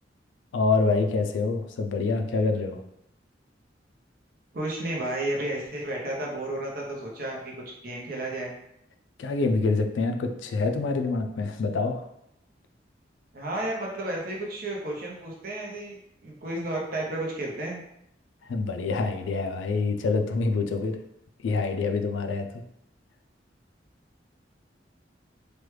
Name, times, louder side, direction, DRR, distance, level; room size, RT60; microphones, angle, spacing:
voice 1, 0.5-2.8 9.2-12.0 18.4-21.0 21.4-22.5, left 3 dB, 85° left, 6 dB, 0.4 m, -26 dB
voice 2, 4.5-7.5 7.8-8.5 13.3-17.8, right 1 dB, 50° right, -2 dB, 0.7 m, -32 dB
3.2 x 2.2 x 3.1 m, 0.78 s
head